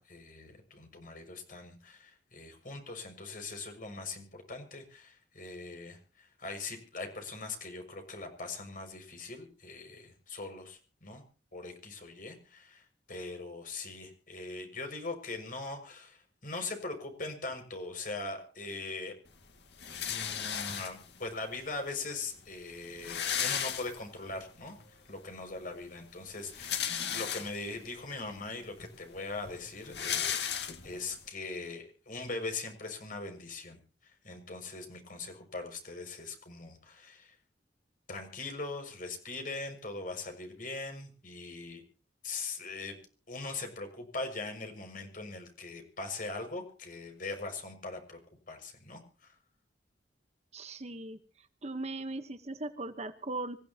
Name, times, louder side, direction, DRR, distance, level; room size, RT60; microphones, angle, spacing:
voice 1, 0.0-11.2 11.5-19.1 19.9-26.7 27.1-33.8 34.0-37.3 38.1-41.8 42.2-43.0 43.3-48.2 48.5-49.3, left 3 dB, 50° left, 5 dB, 6.5 m, -41 dB
sound 1, 19.8-21.2 22.1-22.2 22.4-22.5 22.7-24.3 24.8-24.9 26.3-27.8 28.4-28.5 28.8-31.1, left 9 dB, 65° left, 2.3 m, -35 dB
voice 2, 50.5-51.2 51.6-53.6, right 2 dB, 35° right, 10 dB, 1.2 m, -38 dB
26.0 x 16.0 x 3.0 m, 0.38 s
head